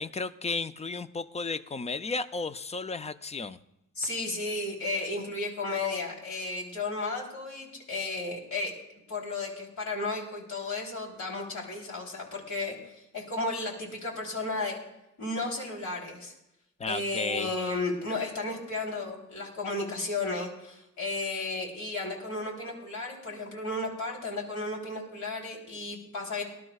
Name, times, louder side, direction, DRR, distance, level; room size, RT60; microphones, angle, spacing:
voice 1, 0.0-3.6 16.8-17.5, left 3 dB, 20° left, 13 dB, 0.4 m, -33 dB
voice 2, 3.9-8.7 9.1-14.8 15.2-16.3 16.9-26.4, left 2 dB, 70° left, -1 dB, 3.4 m, -33 dB
19.5 x 12.0 x 2.3 m, 0.89 s
cardioid pair, 90°, 30 cm